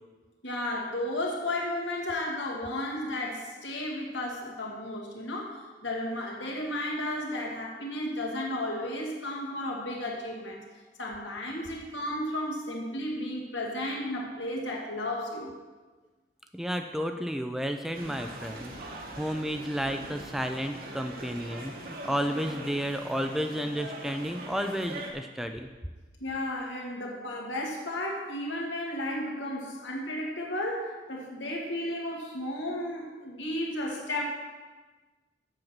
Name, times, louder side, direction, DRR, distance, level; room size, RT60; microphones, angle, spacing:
voice 1, 0.4-10.6 11.0-15.5 26.2-34.2, left 1 dB, 80° left, -1 dB, 2.1 m, -33 dB
voice 2, 16.5-18.9 19.2-25.7, equal, ahead, 6 dB, 0.4 m, -32 dB
sound 1, 17.9-25.1, right 1 dB, 50° right, 1.4 m, -42 dB
7.9 x 6.2 x 7.2 m, 1.3 s
head